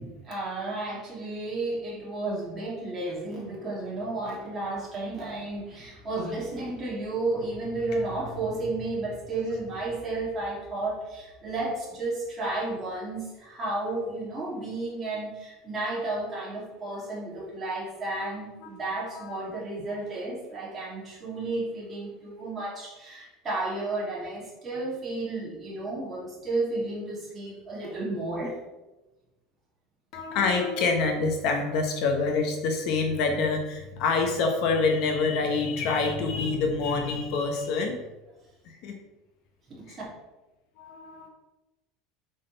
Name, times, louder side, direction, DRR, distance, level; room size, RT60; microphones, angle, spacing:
voice 1, 0.0-28.5 39.7-40.0, right 2 dB, 20° right, -5 dB, 2.3 m, -32 dB
voice 2, 30.1-38.0 38.7-38.9 39.9-40.0 40.8-41.3, left 4 dB, 45° left, 3 dB, 0.9 m, -26 dB
7.8 x 4.0 x 5.2 m, 1.1 s
cardioid pair, 180°, 0 cm